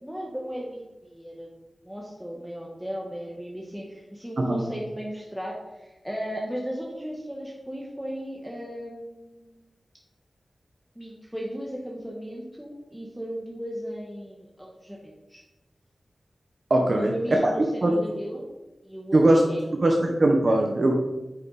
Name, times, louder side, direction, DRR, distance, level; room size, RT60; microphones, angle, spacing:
voice 1, 0.0-1.5 1.8-9.6 10.9-15.4 16.9-18.5 18.8-19.2 19.5-19.9, equal, 5° right, -2 dB, 1.4 m, -36 dB
voice 2, 16.7-17.1 17.4-17.5 17.8-17.9 19.1-19.5 19.8-20.9, right 1 dB, 45° right, 1 dB, 1.0 m, -20 dB
9.0 x 6.7 x 4.1 m, 1.1 s
wide cardioid pair, 90°, 0 cm